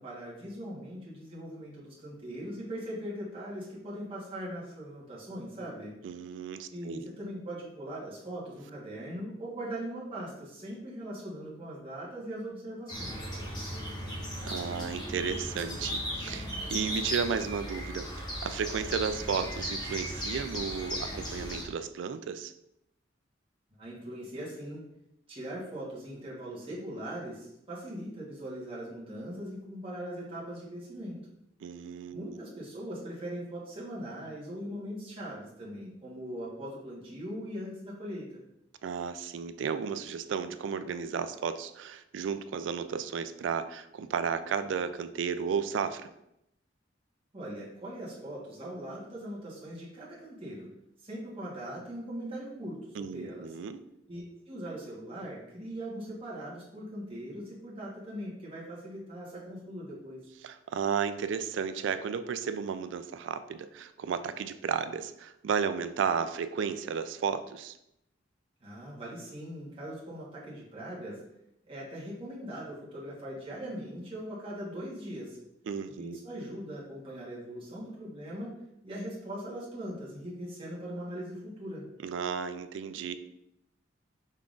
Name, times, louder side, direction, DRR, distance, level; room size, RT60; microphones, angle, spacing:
voice 1, 0.0-6.0 6.7-13.2 23.8-24.9 25.3-31.2 32.1-38.4 47.3-50.7 51.0-53.5 54.1-60.3 68.6-71.2 71.7-75.4 76.0-78.6 78.8-81.9, equal, 30° right, -7 dB, 1.2 m, -40 dB
voice 2, 6.0-7.1 14.4-22.5 31.6-32.4 38.8-46.1 52.9-53.8 60.4-67.8 75.7-76.2 82.0-83.2, right 6 dB, 85° right, 11 dB, 0.3 m, -33 dB
sound 1, 12.9-21.6, equal, 25° left, 1.2 m, -36 dB
5.6 x 3.6 x 2.5 m, 0.81 s
head